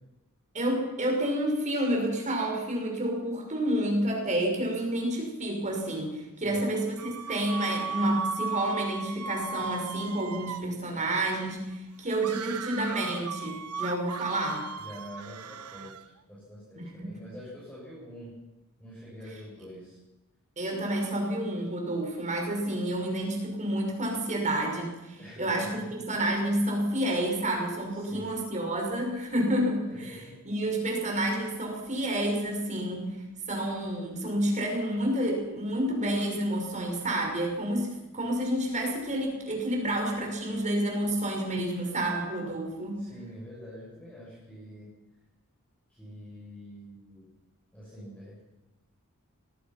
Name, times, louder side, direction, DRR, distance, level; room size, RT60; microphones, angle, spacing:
voice 1, 0.5-14.7 16.8-17.1 20.6-30.2 30.4-33.2 33.5-43.0, right 1 dB, 35° right, 1 dB, 6.0 m, -29 dB
sound 1, 7.0-10.7 12.2-16.1, right 5 dB, 90° right, 1.2 m, -36 dB
voice 2, 14.8-18.3 18.8-20.0 25.2-25.9 27.9-28.4 29.9-30.3 42.9-44.9 45.9-47.3 47.7-48.4, equal, 5° left, -8 dB, 7.9 m, -45 dB
26.0 x 19.5 x 6.0 m, 1.0 s
head